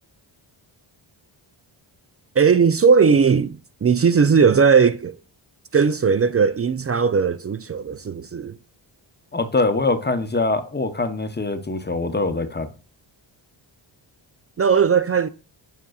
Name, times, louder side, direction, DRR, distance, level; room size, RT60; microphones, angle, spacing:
voice 1, 2.4-5.1 5.7-8.6 14.6-15.3, right 6 dB, 30° right, 0.4 m, -18 dB
voice 2, 9.3-12.7, left 3 dB, 20° left, 0.8 m, -23 dB
7.7 x 5.3 x 2.4 m
cardioid pair, 80°, 49 cm